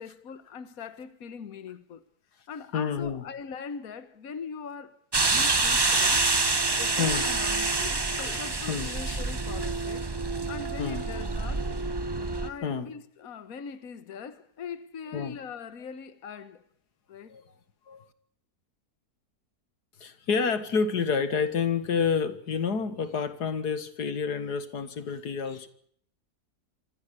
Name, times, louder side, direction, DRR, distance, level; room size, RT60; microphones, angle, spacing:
voice 1, 0.0-2.0 2.5-6.2 6.7-10.1 10.5-11.7 12.4-16.6 17.1-17.3, left 6 dB, 65° left, 1.7 m, -41 dB
voice 2, 2.7-3.2 7.0-7.3 8.2-8.4 8.7-9.2 10.8-11.0 12.6-12.9 15.1-15.4 17.3-17.4 17.9-18.0 20.0-25.7, left 6 dB, 85° left, 2.2 m, -29 dB
sound 1, 5.1-12.5, right 3 dB, 20° right, 0.9 m, -27 dB
26.5 x 15.0 x 8.4 m
omnidirectional pair, 1.7 m